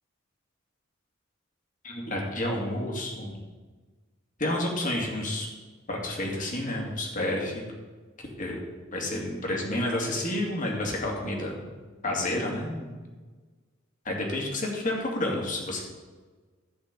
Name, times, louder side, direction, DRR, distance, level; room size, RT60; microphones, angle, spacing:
voice 1, 1.8-3.4 4.4-5.5 5.9-7.6 8.4-11.7 12.0-13.0 14.0-15.8, left 1 dB, 40° left, 0 dB, 2.2 m, -30 dB
12.5 x 4.5 x 8.2 m, 1.4 s
head